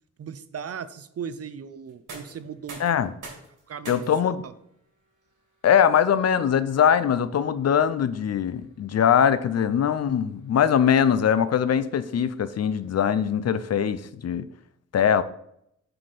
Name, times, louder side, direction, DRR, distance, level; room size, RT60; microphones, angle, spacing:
voice 1, 0.2-2.9 3.7-4.5, right 7 dB, 50° right, 13 dB, 0.5 m, -37 dB
sound 1, 1.8-13.6, right 3 dB, 70° right, 3.2 m, -50 dB
voice 2, 2.8-3.1 3.9-4.4 5.6-14.5 14.9-15.2, left 8 dB, 55° left, 14 dB, 0.5 m, -22 dB
7.6 x 4.2 x 4.9 m, 0.74 s
wide cardioid pair, 120°, 32 cm